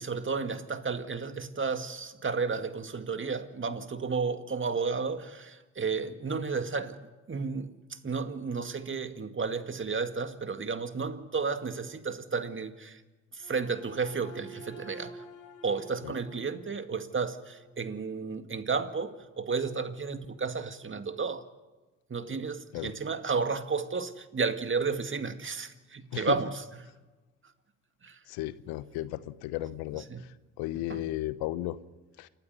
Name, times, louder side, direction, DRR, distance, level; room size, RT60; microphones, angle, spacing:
voice 1, 0.0-7.0 7.3-7.7 8.0-13.0 13.4-15.1 15.6-21.4 22.1-26.6 28.0-28.2 30.0-30.2 30.9-31.0, right 5 dB, 30° right, 2.1 m, -32 dB
sound 1, 13.4-17.7, right 1 dB, 60° left, 4.5 m, -49 dB
voice 2, 28.3-30.1 30.6-31.8 32.2-32.3, left 15 dB, 75° left, 1.0 m, -34 dB
29.0 x 12.5 x 9.7 m
hypercardioid pair, 55°, 38 cm